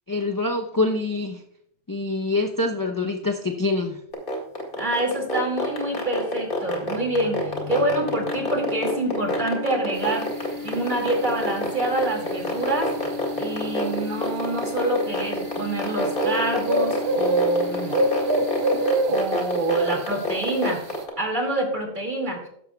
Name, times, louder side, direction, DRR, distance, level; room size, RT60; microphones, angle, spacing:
voice 1, 0.1-1.4 1.9-4.0, left 2 dB, 20° left, 1 dB, 0.5 m, -25 dB
sound 1, 4.1-21.1, left 2 dB, 40° left, 2.2 m, -26 dB
voice 2, 4.8-10.3 10.6-12.9 13.4-17.9 19.0-20.8 21.2-22.4, right 2 dB, 35° right, 2 dB, 2.4 m, -26 dB
sound 2, 5.4-19.4, left 6 dB, 90° left, 1.1 m, -37 dB
sound 3, 10.0-21.0, right 1 dB, 55° right, 1.3 m, -28 dB
14.0 x 11.5 x 2.3 m, 0.71 s
omnidirectional pair, 1.3 m